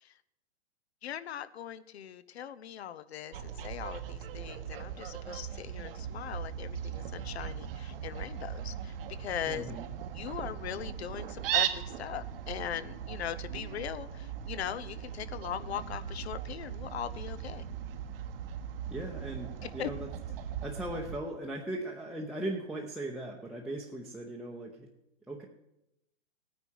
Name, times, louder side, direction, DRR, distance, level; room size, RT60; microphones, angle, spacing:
voice 1, 1.0-8.9 9.2-9.7 10.1-17.6 19.6-19.9, left 10 dB, 65° left, 15 dB, 1.0 m, -40 dB
Fowl, 3.3-21.2, right 9 dB, 55° right, 1.1 m, -38 dB
voice 2, 9.4-9.9 18.9-20.1 20.6-24.9 25.3-25.4, right 1 dB, ahead, 0 dB, 0.8 m, -38 dB
17.5 x 9.7 x 4.7 m, 0.86 s
hypercardioid pair, 140°, 34 cm